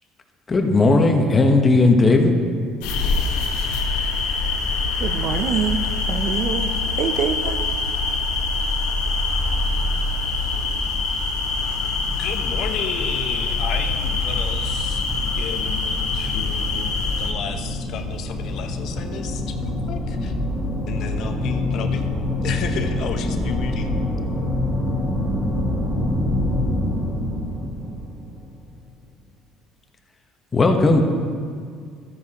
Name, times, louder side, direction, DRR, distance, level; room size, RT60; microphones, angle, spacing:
voice 1, 0.5-2.3 30.5-31.0, left 2 dB, 25° left, 4 dB, 1.0 m, -16 dB
sound 1, 2.8-17.3, left 3 dB, 90° left, 1.1 m, -24 dB
voice 2, 5.0-7.6, right 8 dB, 60° right, 10 dB, 0.5 m, -26 dB
sound 2, 11.8-28.8, left 1 dB, 10° right, 1.8 m, -27 dB
voice 3, 12.2-15.0 15.4-16.9 17.2-20.3 20.9-22.0 22.4-24.0, left 7 dB, 60° left, 7 dB, 0.7 m, -32 dB
12.5 x 9.4 x 2.9 m, 2.1 s
supercardioid pair, 100°, 0 cm